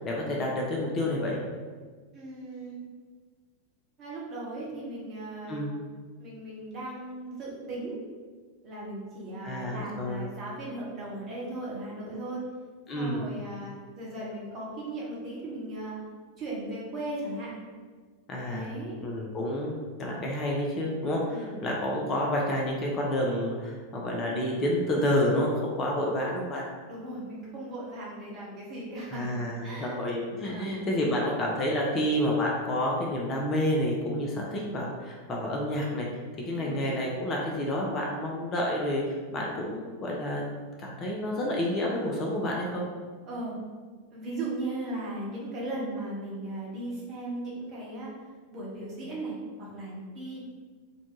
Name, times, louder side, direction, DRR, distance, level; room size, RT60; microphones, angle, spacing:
voice 1, 0.0-1.4 5.5-5.8 9.4-10.3 12.9-13.2 18.3-18.7 19.0-26.6 29.1-36.1 36.5-39.0 39.3-40.5 40.8-42.9, left 1 dB, 30° left, -2 dB, 0.4 m, -29 dB
voice 2, 2.1-2.7 4.0-5.6 6.2-8.0 8.6-12.4 13.0-16.0 16.4-17.5 18.5-19.0 21.3-21.5 26.8-29.2 29.6-29.9 30.4-30.8 36.6-36.8 43.3-43.6 44.1-48.1 48.5-50.4, right 2 dB, 30° right, -6 dB, 0.9 m, -37 dB
2.5 x 2.2 x 2.8 m, 1.5 s
figure-of-eight pair, 90°, 0 cm